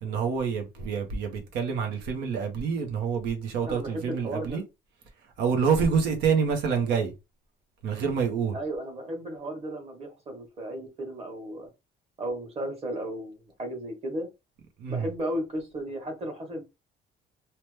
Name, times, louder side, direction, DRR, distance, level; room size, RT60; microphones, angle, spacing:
voice 1, 0.0-4.6 5.4-7.1 7.8-8.6 14.8-15.1, right 6 dB, 85° right, 0.8 m, -27 dB
voice 2, 3.6-4.6 8.5-11.7 12.2-14.3 14.9-16.6, right 1 dB, 35° right, 1.4 m, -35 dB
2.9 x 2.1 x 3.2 m
cardioid pair, 110°, 17 cm